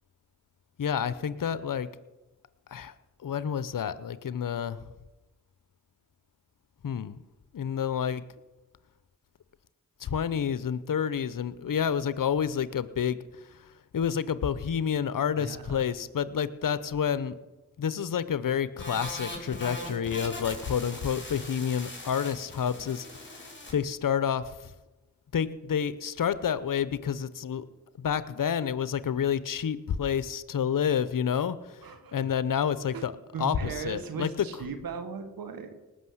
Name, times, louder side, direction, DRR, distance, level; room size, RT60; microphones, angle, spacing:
voice 1, 0.8-1.9 2.7-2.9 3.2-4.8 6.8-7.2 7.5-8.2 10.0-13.2 13.5-13.6 13.9-17.3 17.8-24.7 25.3-27.6 28.0-31.8 32.1-33.1 33.4-34.3, left 8 dB, 70° left, 15 dB, 0.8 m, -29 dB
voice 2, 15.3-15.8 31.8-32.2 32.9-33.1 33.3-35.8, right 5 dB, 90° right, 9 dB, 1.5 m, -38 dB
sound 1, 18.8-23.7, left 1 dB, 35° left, 4.1 m, -40 dB
19.0 x 6.4 x 7.9 m, 1.1 s
cardioid pair, 40°, 34 cm